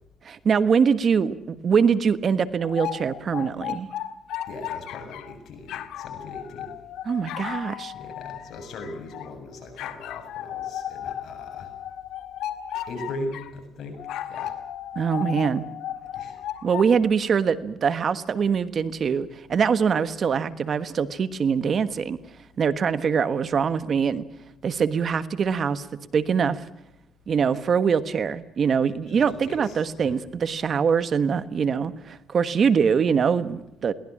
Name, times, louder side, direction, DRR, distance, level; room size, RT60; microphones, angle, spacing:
voice 1, 0.2-3.9 7.1-7.9 14.9-15.7 16.6-22.2 22.6-24.2 24.6-25.9 26.1-26.6 27.3-33.9, right 6 dB, 50° right, 13 dB, 1.4 m, -23 dB
sound 1, 2.6-5.3 5.7-9.3 9.8-13.5 14.0-16.9, left 11 dB, 85° left, 1.7 m, -35 dB
voice 2, 4.5-6.7 7.9-11.7 12.9-14.0 14.2-14.6 16.1-16.4 29.1-30.1, left 2 dB, 70° left, 4 dB, 7.5 m, -39 dB
22.0 x 19.0 x 8.6 m, 0.87 s
cardioid pair, 90°, 0 cm